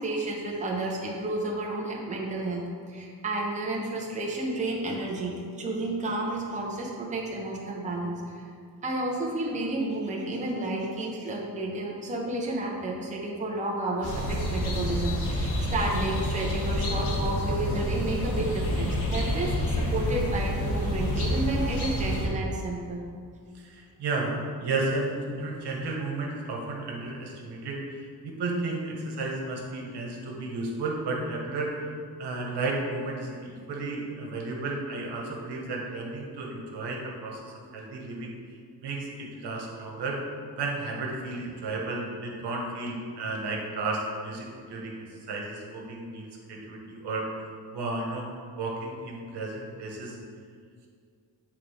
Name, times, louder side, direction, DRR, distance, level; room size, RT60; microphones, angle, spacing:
voice 1, 0.0-8.5 8.8-23.0, right 2 dB, 20° right, -2 dB, 0.8 m, -31 dB
sound 1, 14.0-22.3, equal, 75° left, 1.6 m, -28 dB
voice 2, 23.5-31.9 32.2-40.2 40.6-47.3 47.7-50.2, right 2 dB, 75° right, -1 dB, 1.3 m, -33 dB
7.7 x 3.6 x 4.9 m, 2.1 s
cardioid pair, 145°, 41 cm